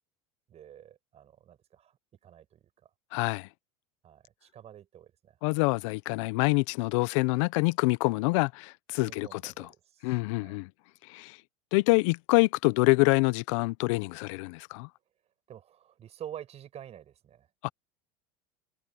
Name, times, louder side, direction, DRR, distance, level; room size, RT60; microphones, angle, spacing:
voice 1, 0.5-2.0 2.2-2.9 4.0-5.4 8.9-10.6 15.5-17.5, right 10 dB, 40° right, 6.5 m, -48 dB
voice 2, 3.1-3.5 5.4-9.7 10.0-10.7 11.1-11.4 11.7-14.9 17.6-17.7, left 25 dB, 70° left, 0.9 m, -26 dB
supercardioid pair, 100°, 17 cm